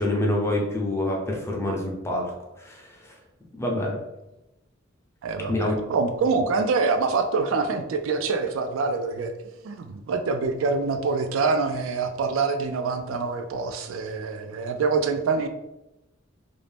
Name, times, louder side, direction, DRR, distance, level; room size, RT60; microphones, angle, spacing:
voice 1, 0.0-2.3 2.6-2.9 3.5-4.0 5.5-5.8, left 1 dB, 15° left, -1 dB, 0.5 m, -26 dB
voice 2, 5.2-9.3 9.6-15.5, right 4 dB, 90° right, 7 dB, 0.3 m, -25 dB
2.6 x 2.0 x 3.2 m, 0.95 s
head